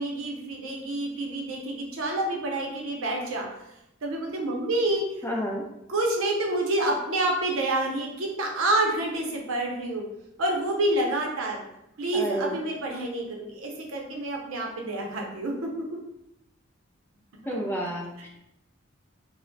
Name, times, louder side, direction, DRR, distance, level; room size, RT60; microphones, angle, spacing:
voice 1, 0.0-3.5 4.0-5.2 5.9-10.0 10.4-11.6 12.0-15.7, right 1 dB, 85° right, 0 dB, 0.6 m, -28 dB
voice 2, 5.2-5.6 12.1-12.6 17.5-18.3, equal, 10° left, -1 dB, 0.4 m, -30 dB
2.2 x 2.1 x 3.7 m, 0.86 s
head